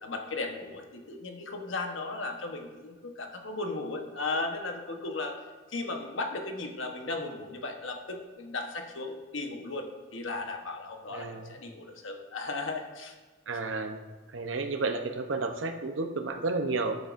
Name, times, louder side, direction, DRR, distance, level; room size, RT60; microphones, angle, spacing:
voice 1, 0.0-5.4 5.7-13.2, left 3 dB, 80° left, 3 dB, 1.1 m, -36 dB
voice 2, 11.1-11.6 13.5-14.0 14.3-17.0, right 3 dB, 75° right, 5 dB, 0.8 m, -31 dB
12.0 x 8.2 x 2.6 m, 1.3 s
head